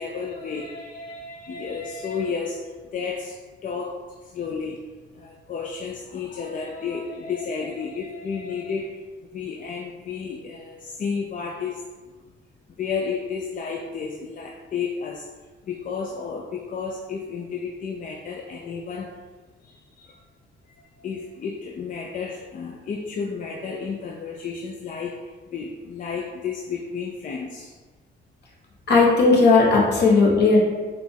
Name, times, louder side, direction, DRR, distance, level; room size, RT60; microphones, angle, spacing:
voice 1, 0.0-4.8 5.1-9.0 9.3-11.8 12.8-15.3 15.6-19.2 19.6-20.2 20.8-27.8, left 5 dB, 40° left, 1 dB, 0.4 m, -32 dB
voice 2, 28.9-30.6, left 3 dB, 60° left, -4 dB, 1.2 m, -16 dB
4.9 x 2.3 x 3.3 m, 1.3 s
cardioid pair, 90°, 20 cm